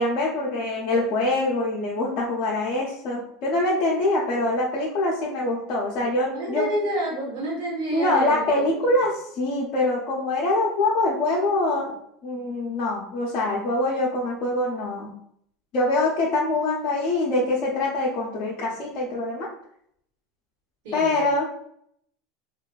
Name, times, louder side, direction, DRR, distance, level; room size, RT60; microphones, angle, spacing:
voice 1, 0.0-6.7 7.9-11.9 12.2-15.1 15.7-19.5 20.9-21.7, left 2 dB, 50° left, -4 dB, 0.5 m, -24 dB
voice 2, 6.3-8.9 20.8-21.2, right 1 dB, 80° right, -4 dB, 1.2 m, -29 dB
2.5 x 2.2 x 2.2 m, 0.69 s
supercardioid pair, 135°, 0 cm